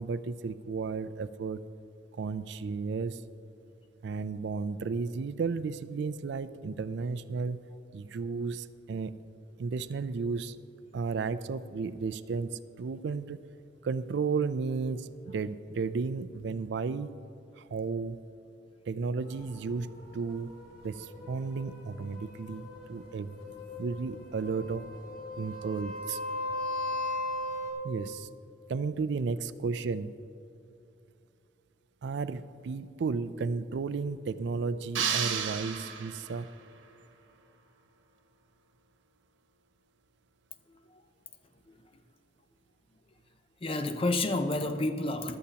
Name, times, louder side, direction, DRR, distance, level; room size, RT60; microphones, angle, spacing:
voice 1, 0.0-1.6 2.1-3.2 4.0-7.6 7.9-9.1 9.6-10.6 10.9-13.4 13.8-17.1 17.6-18.2 18.9-20.6 20.8-23.4 23.8-24.9 25.4-26.2 27.8-28.3 28.7-30.1 32.0-36.5, right 4 dB, 60° right, 0.3 m, -33 dB
sound 1, 19.2-27.7, left 2 dB, 50° left, 2.2 m, -39 dB
sound 2, 34.9-36.5, right 7 dB, 80° right, 1.1 m, -32 dB
voice 2, 43.6-45.4, left 2 dB, 30° left, 0.5 m, -30 dB
15.0 x 11.5 x 2.9 m
head